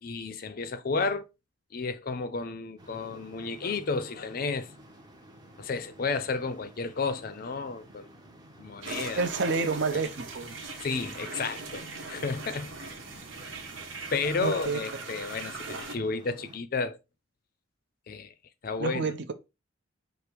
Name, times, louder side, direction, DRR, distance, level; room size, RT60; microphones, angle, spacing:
voice 1, 0.0-1.3 1.7-4.7 5.6-8.1 8.6-10.0 10.8-12.7 13.4-13.5 14.1-17.0 18.1-18.3 18.6-19.1, left 4 dB, 45° left, 0.5 m, -32 dB
sound 1, 2.8-16.6, equal, 20° right, 0.7 m, -52 dB
sound 2, 8.8-15.9, right 3 dB, 80° right, 0.9 m, -40 dB
voice 2, 9.2-10.6 14.4-14.8 18.8-19.3, right 4 dB, 60° right, 0.6 m, -29 dB
5.0 x 2.0 x 4.5 m
head